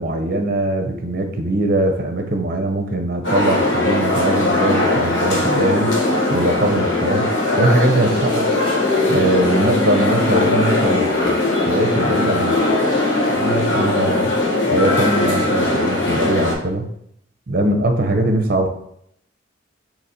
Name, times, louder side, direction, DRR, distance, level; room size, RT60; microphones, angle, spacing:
voice 1, 0.0-5.9 6.3-7.3 7.6-8.5 9.1-11.3 11.7-12.6 13.3-14.3 14.7-16.9 17.5-18.7, right 1 dB, 50° right, 4 dB, 0.7 m, -21 dB
sound 1, 3.2-16.5, left 2 dB, 75° left, 1.2 m, -19 dB
4.0 x 3.0 x 4.2 m, 0.71 s
head